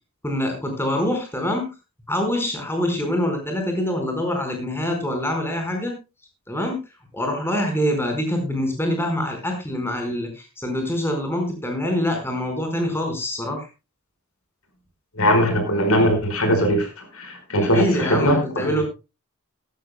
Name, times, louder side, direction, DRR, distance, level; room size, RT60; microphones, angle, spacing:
voice 1, 0.2-1.7 2.1-5.9 6.5-6.8 7.1-13.7 17.5-18.8, left 1 dB, 10° left, 3 dB, 4.6 m, -25 dB
voice 2, 15.1-18.8, equal, 85° left, 6 dB, 4.9 m, -20 dB
18.0 x 14.0 x 2.2 m, 0.27 s
head